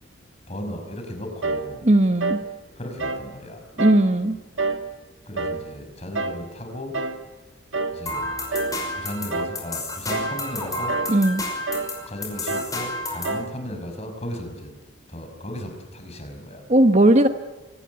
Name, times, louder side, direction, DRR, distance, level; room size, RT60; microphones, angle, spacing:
voice 1, 0.5-1.9 2.8-3.6 5.3-7.0 7.9-8.3 9.0-11.0 12.1-14.7 15.1-16.6, equal, 35° left, 5 dB, 5.9 m, -35 dB
sound 1, 1.4-1.7 2.2-2.5 3.0-3.3 3.8-4.1 4.6-4.9 5.3-5.7 6.1-6.4 6.9-7.2 7.7-8.0 8.5-8.8 9.3-9.6 10.1-10.4 10.9-11.2 11.7-12.0 12.5-12.8 13.2-13.6, right 3 dB, 80° right, 1.8 m, -28 dB
voice 2, 1.8-2.4 3.8-4.4 11.1-11.4 16.7-17.3, right 1 dB, 35° right, 8 dB, 1.2 m, -17 dB
sound 2, 8.1-13.4, left 1 dB, 20° left, 5.8 m, -31 dB
24.5 x 18.5 x 9.5 m, 1.2 s
head